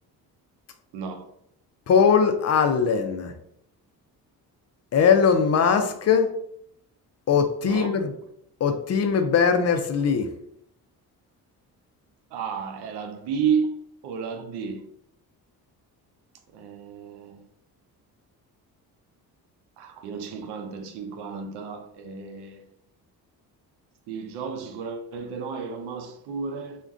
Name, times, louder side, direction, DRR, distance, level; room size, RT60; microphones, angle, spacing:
voice 1, 0.9-1.3 7.6-8.0 12.3-13.7 14.0-14.8 16.5-17.4 19.8-22.6 24.1-26.8, right 6 dB, 80° right, 0.6 m, -32 dB
voice 2, 1.9-3.3 4.9-6.3 7.3-8.1 8.6-10.3, left 6 dB, 40° left, 0.4 m, -20 dB
2.4 x 2.2 x 3.5 m
supercardioid pair, 75°, 39 cm